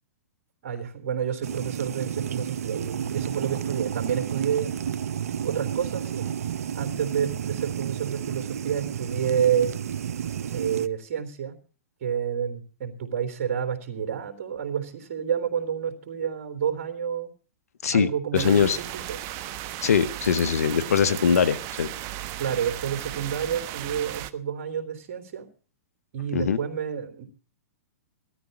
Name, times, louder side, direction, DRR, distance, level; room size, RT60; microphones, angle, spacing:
voice 1, 0.6-4.7 5.4-6.3 6.7-9.7 10.5-11.6 12.0-17.3 17.9-19.2 22.4-25.5 26.1-27.3, right 8 dB, 55° right, 6 dB, 3.4 m, -29 dB
sound 1, 1.4-10.9, right 9 dB, 75° right, 0.7 m, -31 dB
voice 2, 17.8-18.8 19.8-21.9 26.3-26.6, left 7 dB, 75° left, 14 dB, 1.4 m, -22 dB
sound 2, 18.3-24.3, right 13 dB, 35° right, 1.0 m, -36 dB
16.5 x 13.0 x 5.4 m, 0.39 s
hypercardioid pair, 125°, 8 cm